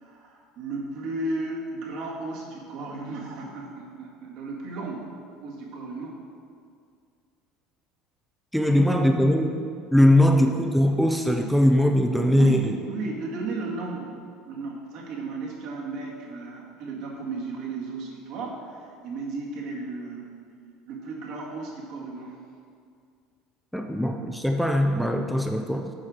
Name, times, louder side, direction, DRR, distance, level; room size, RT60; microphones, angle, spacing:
voice 1, 0.0-5.1 5.4-6.2 8.7-9.9 10.2-10.5 12.2-14.1 14.5-20.4 20.9-22.4 23.9-24.2 24.9-25.0, right 3 dB, 60° right, -3 dB, 2.0 m, -35 dB
voice 2, 8.5-9.5 9.9-12.7 23.7-25.9, left 1 dB, ahead, 3 dB, 0.7 m, -21 dB
8.5 x 4.9 x 6.3 m, 2.2 s
hypercardioid pair, 70°, 0 cm